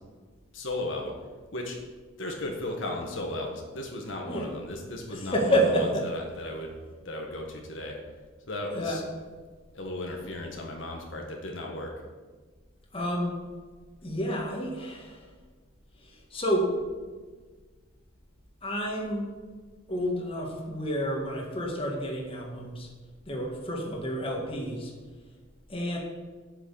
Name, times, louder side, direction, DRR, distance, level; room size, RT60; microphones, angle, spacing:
voice 1, 0.5-1.2 1.5-1.8 2.2-6.7 7.0-8.0 8.5-9.0 9.7-11.9, left 1 dB, 70° left, 1 dB, 1.6 m, -35 dB
voice 2, 5.1-6.0 8.7-9.0 12.9-13.4 14.0-15.3 16.0-16.7 18.6-19.3 19.9-22.9 23.3-24.9 25.7-26.0, equal, 25° left, -1 dB, 1.9 m, -29 dB
8.2 x 6.5 x 8.3 m, 1.4 s
head